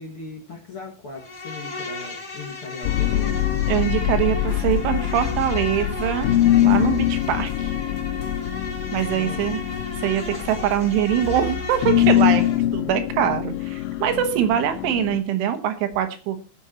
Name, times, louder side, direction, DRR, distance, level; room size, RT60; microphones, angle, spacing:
voice 1, 0.0-3.4 9.1-9.5 12.2-12.6, left 4 dB, 50° left, 1 dB, 1.7 m, -38 dB
Insect, 1.2-12.6, left 2 dB, 25° left, 3.3 m, -34 dB
sound 1, 2.8-15.2, left 13 dB, 90° left, 2.2 m, -23 dB
voice 2, 3.7-6.3 6.6-7.7 8.9-9.6 10.0-12.4 12.7-16.4, right 10 dB, 90° right, 7 dB, 3.9 m, -23 dB
sound 2, 4.4-12.3, left 10 dB, 65° left, 3.3 m, -38 dB
21.0 x 7.2 x 2.9 m, 0.33 s
omnidirectional pair, 5.4 m